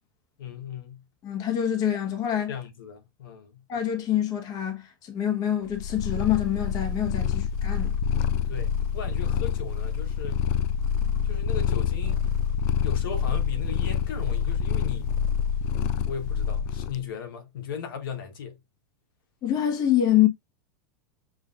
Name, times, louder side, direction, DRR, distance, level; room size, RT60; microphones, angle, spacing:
voice 1, 0.4-1.1 2.5-3.7 7.3-7.4 8.4-10.5 11.2-12.2 12.8-15.1 16.1-18.6, left 7 dB, 80° left, 1.2 m, -37 dB
voice 2, 1.2-2.5 3.7-7.9 19.4-20.3, left 11 dB, 35° left, 1.1 m, -25 dB
Purr, 5.7-17.0, left 8 dB, 55° left, 0.4 m, -26 dB
6.3 x 2.5 x 2.4 m
supercardioid pair, 135°, 11 cm